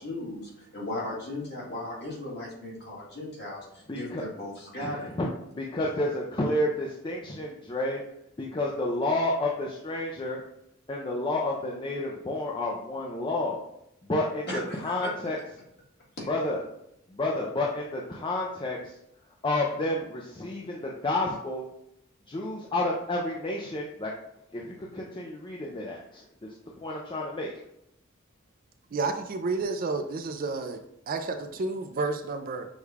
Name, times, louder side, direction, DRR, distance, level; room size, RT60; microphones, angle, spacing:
voice 1, 0.0-5.1 14.5-15.1 16.2-16.3, left 1 dB, 50° left, -4 dB, 1.6 m, -36 dB
voice 2, 3.9-4.2 4.8-5.3 5.6-8.0 8.4-10.4 10.9-13.6 14.0-15.4 16.3-16.6 17.1-18.8 19.4-21.7 22.3-24.1 24.5-26.2 26.8-27.5, left 2 dB, 25° left, -2 dB, 0.4 m, -30 dB
voice 3, 28.9-30.8 31.1-32.7, right 3 dB, 40° right, 7 dB, 0.4 m, -30 dB
6.3 x 2.3 x 3.4 m, 0.80 s
head